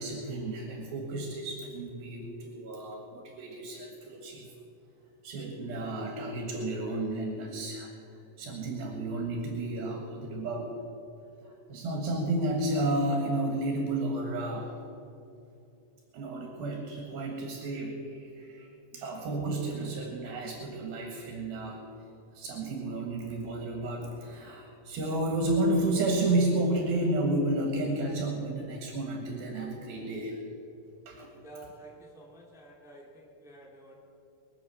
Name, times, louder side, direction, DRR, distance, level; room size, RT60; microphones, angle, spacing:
voice 1, 0.0-4.5 5.2-7.9 8.4-10.8 11.4-14.7 16.1-21.8 22.3-30.4 31.1-31.3, right 2 dB, 70° right, 2 dB, 3.4 m, -32 dB
voice 2, 31.4-33.9, right 2 dB, ahead, -2 dB, 1.6 m, -50 dB
22.5 x 8.2 x 6.9 m, 2.8 s
omnidirectional pair, 4.4 m